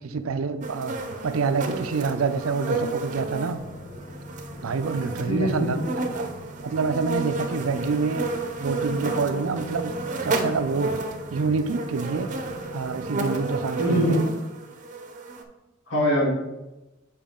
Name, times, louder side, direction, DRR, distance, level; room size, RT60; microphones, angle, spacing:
voice 1, 0.0-3.6 4.6-5.8 6.1-6.3 6.6-8.2 8.6-9.9 10.2-11.0 11.3-12.3 12.7-14.2, right 4 dB, 80° right, 11 dB, 0.5 m, -27 dB
sound 1, 0.6-15.4, right 2 dB, 40° right, 0.7 m, -32 dB
sound 2, 3.5-13.1, left 1 dB, 25° left, 2.1 m, -41 dB
voice 2, 5.3-5.9 13.8-14.2 15.9-16.4, equal, 65° left, -5 dB, 2.5 m, -23 dB
7.3 x 4.8 x 3.7 m, 1.0 s
head